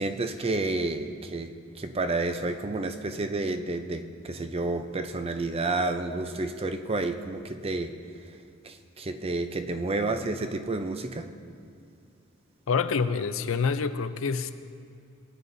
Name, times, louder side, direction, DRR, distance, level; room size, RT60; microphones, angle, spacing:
voice 1, 0.0-7.9 8.6-11.3, right 2 dB, 30° right, 7 dB, 0.5 m, -30 dB
voice 2, 12.7-14.5, left 5 dB, 70° left, 11 dB, 0.5 m, -27 dB
20.0 x 9.4 x 2.7 m, 2.4 s
head